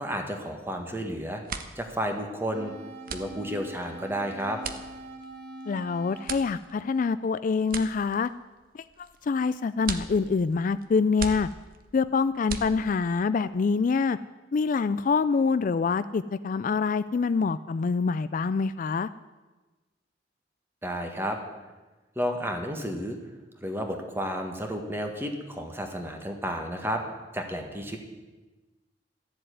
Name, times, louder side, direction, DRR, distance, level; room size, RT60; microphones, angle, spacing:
voice 1, 0.0-1.4 1.7-2.7 3.1-4.6 20.8-21.4 22.1-23.2 23.6-27.0 27.3-28.0, equal, 15° right, 4 dB, 1.7 m, -32 dB
sound 1, 0.8-1.0 1.3-13.2, right 5 dB, 50° right, 1.0 m, -40 dB
sound 2, 2.5-7.6, right 1 dB, 75° right, 2.6 m, -44 dB
voice 2, 5.7-8.3 8.7-11.5 11.9-14.2 14.5-19.1, left 4 dB, 45° left, 14 dB, 0.3 m, -26 dB
13.5 x 7.7 x 9.4 m, 1.2 s
head